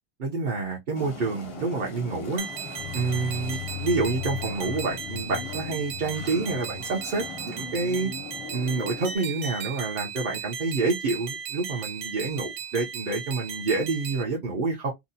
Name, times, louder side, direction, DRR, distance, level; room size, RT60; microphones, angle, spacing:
voice 1, 0.2-2.5 2.9-8.1 8.5-14.9, right 3 dB, 55° right, 0.8 m, -28 dB
sound 1, 0.9-9.2, left 3 dB, 40° left, 0.5 m, -40 dB
sound 2, 2.4-14.2, right 7 dB, 90° right, 0.9 m, -36 dB
sound 3, 2.8-8.5, left 15 dB, 75° left, 0.8 m, -39 dB
2.7 x 2.0 x 2.6 m
omnidirectional pair, 1.1 m